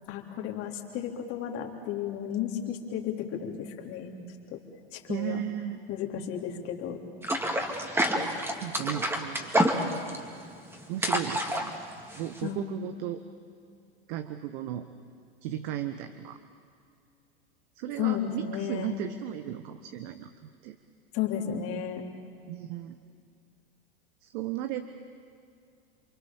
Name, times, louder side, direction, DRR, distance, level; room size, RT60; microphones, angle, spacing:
voice 1, 0.1-4.1 4.5-4.6 4.9-5.4 5.9-7.0 12.4-12.6 18.0-18.9 21.1-22.0, left 9 dB, 50° left, 2 dB, 3.5 m, -33 dB
voice 2, 5.1-5.8 8.2-9.5 10.9-11.8 12.2-13.2 14.1-14.9 15.4-16.4 17.7-20.3 20.6-20.8 22.5-23.0 24.2-24.9, right 12 dB, 55° right, 9 dB, 1.2 m, -35 dB
sound 1, 7.2-12.5, equal, 10° right, 2.4 m, -28 dB
29.0 x 23.5 x 7.2 m, 2.4 s
hypercardioid pair, 105°, 30 cm